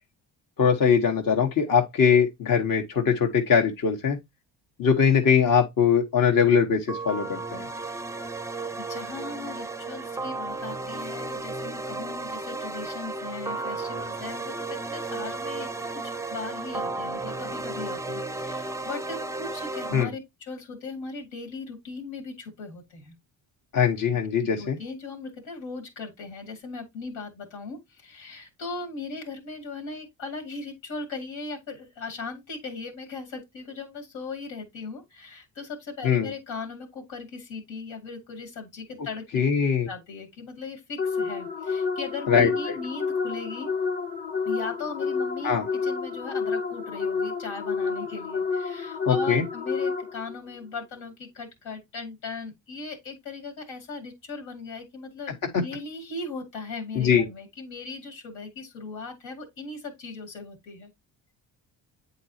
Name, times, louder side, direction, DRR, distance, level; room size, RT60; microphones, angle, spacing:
voice 1, 0.6-4.2 4.8-7.6 19.9-20.1 23.7-24.8 36.0-36.3 39.3-39.9 42.3-42.8 45.4-45.6 49.1-49.4 56.9-57.3, left 6 dB, 45° left, 1.3 m, -21 dB
sound 1, 6.9-20.0, right 3 dB, 5° right, 0.5 m, -34 dB
voice 2, 8.8-23.1 24.4-39.4 39.9-43.7 44.4-45.5 45.8-60.9, left 4 dB, 80° left, 2.5 m, -38 dB
sound 2, 41.0-50.4, left 5 dB, 20° left, 1.0 m, -29 dB
8.3 x 4.0 x 2.8 m
cardioid pair, 80°, 46 cm